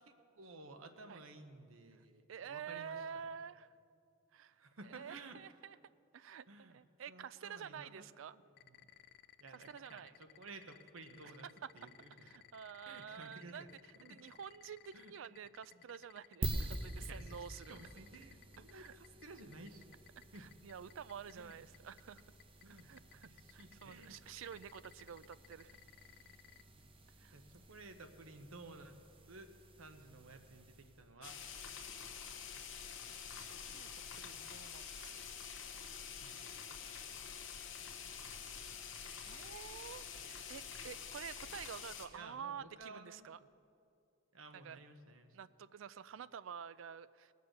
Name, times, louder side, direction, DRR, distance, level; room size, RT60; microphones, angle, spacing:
voice 1, 0.3-3.2 4.5-5.4 6.5-6.8 7.1-8.1 8.7-8.9 9.4-11.5 11.7-12.3 12.8-13.7 14.0-14.2 14.9-15.4 15.7-15.8 17.1-20.0 20.3-20.5 21.3-21.6 22.6-22.9 23.2-24.3 26.8-26.9 27.3-29.0 29.3-29.5 29.8-31.4 36.2-36.5 42.1-43.5 44.3-45.4, right 3 dB, 85° right, 8 dB, 1.0 m, -55 dB
voice 2, 2.3-3.7 4.3-5.8 6.1-8.4 9.5-10.1 11.6-11.7 12.2-17.8 18.7-18.9 20.3-22.2 22.8-25.8 27.2-27.4 33.4-33.5 33.7-35.2 39.2-43.4 44.5-44.8 45.3-47.3, right 7 dB, 70° right, 17 dB, 0.4 m, -49 dB
sound 1, 8.6-26.6, left 12 dB, 50° left, 0.4 m, -59 dB
sound 2, 16.4-31.2, right 1 dB, 25° right, 0.8 m, -48 dB
sound 3, 31.2-42.1, left 7 dB, 70° left, 1.1 m, -47 dB
19.0 x 6.7 x 6.6 m, 2.5 s
head